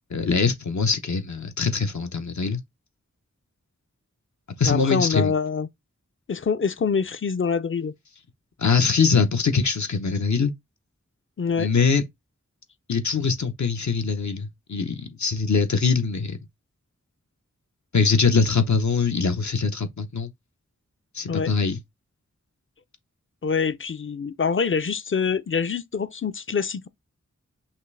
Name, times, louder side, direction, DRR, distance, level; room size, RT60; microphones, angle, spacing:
voice 1, 0.1-2.6 4.6-5.3 8.6-10.5 11.6-12.0 12.9-16.4 17.9-20.3 21.1-21.8, left 5 dB, 70° left, 0.8 m, -22 dB
voice 2, 4.6-5.7 6.3-7.9 11.4-11.7 21.3-21.5 23.4-26.9, left 6 dB, 45° left, 0.5 m, -25 dB
5.7 x 2.5 x 3.2 m
wide cardioid pair, 55°, 29 cm